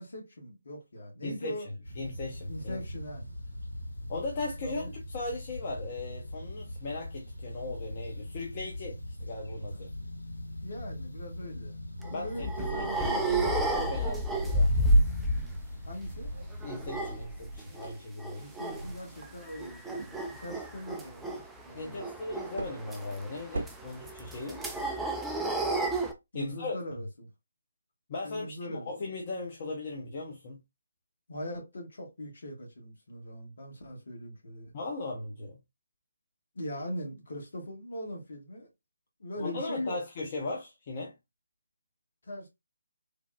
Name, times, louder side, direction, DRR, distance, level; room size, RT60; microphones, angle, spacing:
voice 1, 0.0-1.7 2.5-3.2 4.6-4.9 9.7-9.8 10.6-14.0 15.9-16.3 18.3-22.0 26.3-27.3 28.2-28.9 31.3-34.7 36.5-38.7 39.2-40.0 42.2-42.5, left 1 dB, 60° left, 1.2 m, -41 dB
voice 2, 1.2-1.6 2.0-2.8 4.1-9.9 12.1-14.9 16.6-18.4 21.7-24.6 26.3-26.8 28.1-30.6 34.7-35.6 39.4-41.1, left 2 dB, 35° left, 0.6 m, -38 dB
sound 1, 1.8-17.2, left 1 dB, 85° left, 1.9 m, -41 dB
sound 2, 12.0-15.7 15.9-17.9 18.2-18.8 19.2-26.1, right 1 dB, 5° right, 0.3 m, -31 dB
sound 3, 14.1-23.9, right 2 dB, 60° right, 0.6 m, -46 dB
3.3 x 2.1 x 2.4 m
figure-of-eight pair, 145°, 0 cm